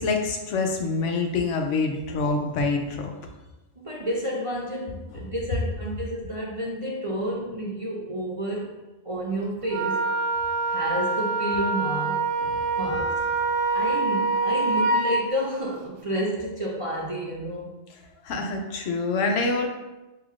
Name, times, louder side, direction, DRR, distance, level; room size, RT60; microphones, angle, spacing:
voice 1, 0.0-3.1 5.1-5.2 12.4-12.5 12.8-13.0 18.2-19.7, left 3 dB, 85° left, 3 dB, 1.0 m, -26 dB
voice 2, 3.8-8.7 9.0-10.1 10.7-12.2 12.8-13.1 13.7-17.7, equal, 40° right, -3 dB, 0.5 m, -30 dB
Wind instrument woodwind instrument, 9.7-15.2, right 3 dB, 90° right, 0.9 m, -25 dB
6.7 x 2.8 x 2.4 m, 1.1 s
omnidirectional pair, 1.2 m